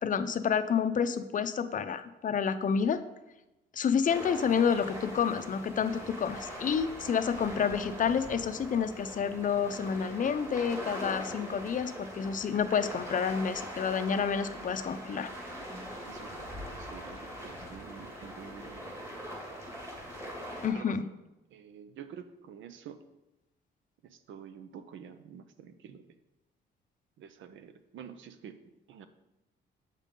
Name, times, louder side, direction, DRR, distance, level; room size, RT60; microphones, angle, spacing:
voice 1, 0.0-3.0 3.7-15.3 20.6-21.1, left 7 dB, 40° left, 11 dB, 0.5 m, -29 dB
sound 1, 4.1-20.7, equal, 15° right, 2.0 m, -42 dB
voice 2, 16.0-19.0 19.2-19.8 20.7-21.0 21.5-23.0 24.0-26.1 27.2-28.6 28.9-29.1, right 8 dB, 75° right, 11 dB, 0.7 m, -48 dB
7.3 x 5.4 x 3.7 m, 0.98 s
cardioid pair, 90°, 20 cm